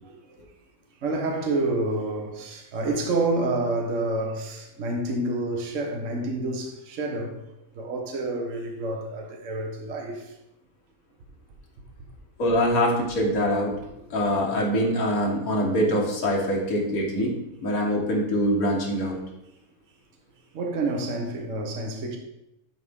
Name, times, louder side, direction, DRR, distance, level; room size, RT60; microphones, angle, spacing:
voice 1, 1.0-7.4 7.8-10.3 20.5-22.2, right 2 dB, 60° right, 1.2 m, -28 dB
voice 2, 12.4-13.8 14.1-17.3 17.6-19.2, equal, 70° left, 1.9 m, -24 dB
10.0 x 4.2 x 3.5 m
omnidirectional pair, 1.6 m